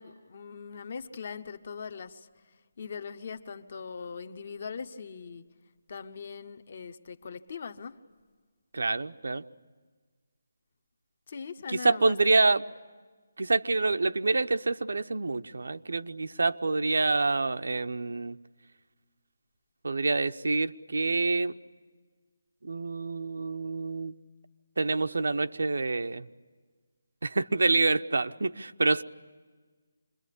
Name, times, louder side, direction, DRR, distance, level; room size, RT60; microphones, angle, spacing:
voice 1, 0.0-2.3 2.8-5.4 5.9-8.0 11.3-12.4, left 5 dB, 30° left, 9 dB, 0.9 m, -41 dB
voice 2, 8.7-9.4 11.7-12.6 13.4-18.4 19.8-21.5 22.6-24.1 24.8-26.3 27.2-29.0, right 3 dB, 70° right, 9 dB, 0.8 m, -27 dB
27.0 x 22.0 x 9.9 m, 1.4 s
hypercardioid pair, 180°, 0 cm